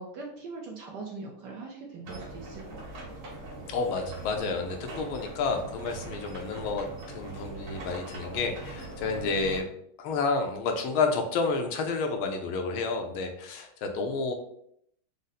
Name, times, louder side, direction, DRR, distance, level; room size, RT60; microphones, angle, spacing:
voice 1, 0.0-3.1, right 3 dB, 70° right, 0 dB, 1.1 m, -41 dB
sound 1, 2.0-9.6, right 2 dB, 90° right, 2.2 m, -41 dB
voice 2, 3.7-6.8 7.1-9.7 10.0-14.3, left 4 dB, 80° left, 4 dB, 1.4 m, -30 dB
5.0 x 2.0 x 4.0 m, 0.70 s
omnidirectional pair, 2.3 m